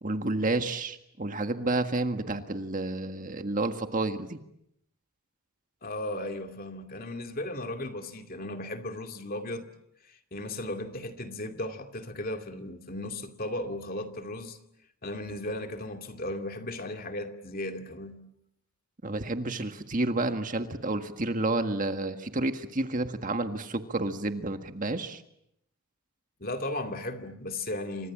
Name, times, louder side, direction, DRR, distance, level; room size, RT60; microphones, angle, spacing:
voice 1, 0.0-4.4 19.0-25.2, right 2 dB, 35° right, 1.7 m, -30 dB
voice 2, 5.8-9.7 10.1-14.6 15.0-18.2 26.4-28.1, left 1 dB, 40° left, 2.5 m, -36 dB
29.0 x 26.0 x 7.4 m
head